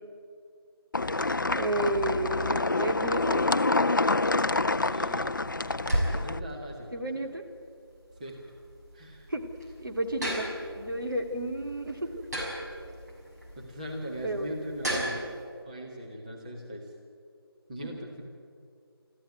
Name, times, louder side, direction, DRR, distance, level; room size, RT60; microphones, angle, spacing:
sound 1, 0.9-6.4, left 2 dB, 55° left, 0.5 m, -27 dB
voice 1, 1.5-3.4 6.9-7.4 9.3-9.4 9.8-10.5 10.7-12.0 14.2-14.5, right 1 dB, 55° right, 3 dB, 2.6 m, -31 dB
sound 2, 4.7-15.4, right 1 dB, 40° right, 6.1 m, -36 dB
voice 2, 4.9-6.0 6.2-6.9 8.2-8.4 8.9-9.3 13.6-15.4 15.6-16.9 17.7-18.2, equal, 20° right, -1 dB, 1.9 m, -40 dB
25.0 x 14.5 x 9.3 m, 2.4 s
figure-of-eight pair, 165°, 13 cm